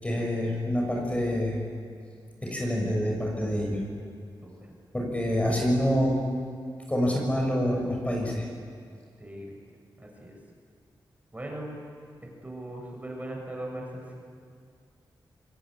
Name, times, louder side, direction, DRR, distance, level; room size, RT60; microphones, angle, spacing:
voice 1, 0.0-1.6 2.4-3.8 4.9-6.2 6.9-8.5, equal, 15° left, 0 dB, 6.7 m, -26 dB
voice 2, 9.2-9.5 10.0-10.3 11.3-11.8 12.4-14.1, right 1 dB, 20° right, 0 dB, 7.0 m, -39 dB
26.5 x 21.0 x 9.9 m, 2.2 s
wide cardioid pair, 90°, 8 cm